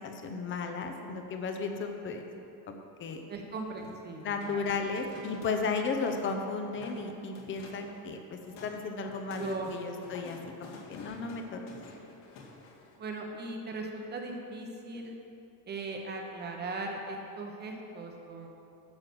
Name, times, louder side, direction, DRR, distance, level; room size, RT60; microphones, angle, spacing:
voice 1, 0.0-2.2 2.7-3.2 4.2-11.6, left 4 dB, 25° left, 5 dB, 0.8 m, -34 dB
voice 2, 3.3-4.6 9.4-9.7 13.0-15.2 15.7-18.5, right 3 dB, 20° right, 2 dB, 1.0 m, -39 dB
sound 1, 3.7-5.6 5.9-6.4 6.7-7.0 7.3-7.9 8.2-13.0, left 4 dB, 65° left, 2.3 m, -50 dB
11.5 x 7.6 x 6.1 m, 2.8 s
cardioid pair, 175°, 47 cm